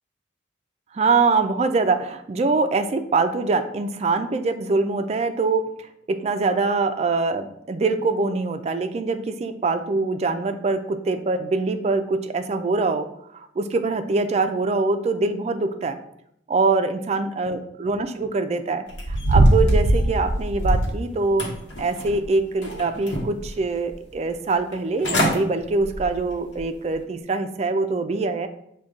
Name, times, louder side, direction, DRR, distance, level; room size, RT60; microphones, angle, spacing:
voice 1, 0.9-5.7 6.1-13.1 13.3-16.0 16.5-28.5, right 3 dB, 35° right, 8 dB, 0.3 m, -24 dB
sound 1, 18.9-21.0 21.4-22.2 22.6-23.5 23.9-24.0 24.7-24.8 25.0-25.4 25.8-26.1 26.6-26.7, right 1 dB, 90° left, 1.0 m, -21 dB
6.4 x 2.2 x 3.5 m, 0.74 s
head